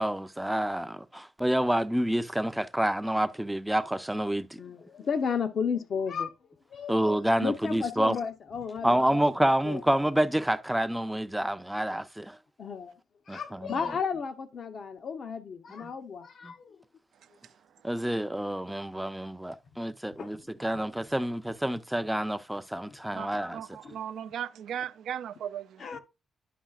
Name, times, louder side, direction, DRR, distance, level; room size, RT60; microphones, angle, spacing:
voice 1, 0.0-4.6 6.9-8.2 8.8-12.4 13.3-13.8 15.8-15.9 16.4-16.5 17.8-23.6, right 1 dB, 5° right, 0.4 m, -28 dB
voice 2, 4.6-6.3 6.7-7.0 7.4-9.2 9.6-9.8 12.6-12.9 13.3-16.8 20.2-20.4 22.9-23.0 23.8-24.0 25.8-26.0, left 6 dB, 60° left, 0.7 m, -33 dB
voice 3, 23.1-25.8, right 9 dB, 80° right, 0.3 m, -37 dB
10.0 x 5.5 x 2.4 m
cardioid pair, 95°, 0 cm